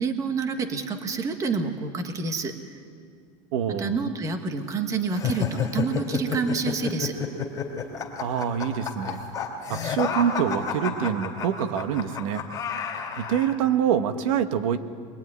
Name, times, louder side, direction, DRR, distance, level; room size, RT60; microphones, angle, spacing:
voice 1, 0.0-2.5 3.8-7.2, right 4 dB, 20° right, 7 dB, 1.5 m, -28 dB
voice 2, 3.5-3.9 8.2-9.2 9.7-12.4 13.2-14.8, right 8 dB, 75° right, 9 dB, 1.5 m, -25 dB
sound 1, 5.1-13.5, left 7 dB, 20° left, 2.9 m, -30 dB
24.5 x 22.0 x 9.7 m, 2.2 s
supercardioid pair, 175°, 17 cm